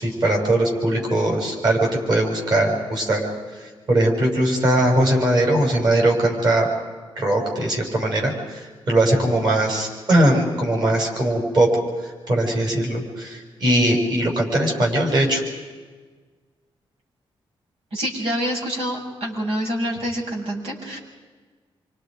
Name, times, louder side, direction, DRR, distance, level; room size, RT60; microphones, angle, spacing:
voice 1, 0.0-3.3 3.9-6.7 7.2-11.7 12.0-15.4, right 1 dB, 45° right, 1 dB, 6.7 m, -20 dB
voice 2, 17.9-21.0, equal, 90° right, -2 dB, 7.8 m, -26 dB
29.0 x 26.0 x 5.3 m, 1.4 s
wide cardioid pair, 160°, 10 cm